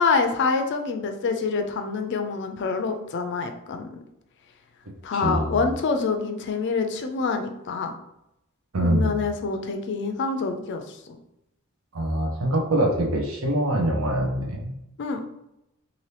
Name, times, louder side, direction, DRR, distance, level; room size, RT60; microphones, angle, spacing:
voice 1, 0.0-4.0 5.0-7.9 8.8-11.2 15.0-15.2, left 4 dB, 55° left, 5 dB, 0.4 m, -26 dB
voice 2, 5.1-5.6 8.7-9.2 11.9-14.7, right 1 dB, 70° right, 0 dB, 0.7 m, -24 dB
2.7 x 2.6 x 3.2 m, 0.85 s
head